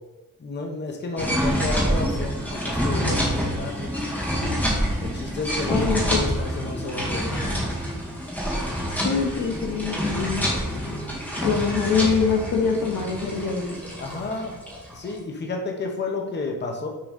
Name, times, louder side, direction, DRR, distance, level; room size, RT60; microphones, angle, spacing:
voice 1, 0.4-4.0 5.0-5.8 6.2-7.7 10.5-11.2 11.4-11.5 14.0-14.5 14.9-16.9, left 3 dB, 30° left, 1 dB, 1.1 m, -32 dB
sound 1, 1.2-15.1, equal, 5° left, 2.0 m, -27 dB
voice 2, 5.7-6.2 9.0-10.5 11.4-13.8, left 5 dB, 70° left, 3 dB, 1.2 m, -24 dB
6.9 x 3.9 x 5.2 m, 1.1 s
wide cardioid pair, 145°, 33 cm